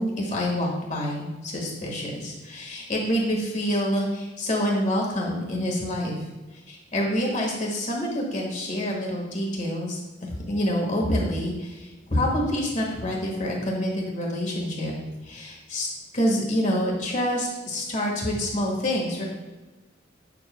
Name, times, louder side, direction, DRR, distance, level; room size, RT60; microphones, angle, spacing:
voice 1, 0.0-6.2 6.7-14.9 15.2-15.9 16.1-19.2, equal, 40° left, -2 dB, 1.7 m, -27 dB
8.4 x 7.1 x 2.3 m, 1.2 s
head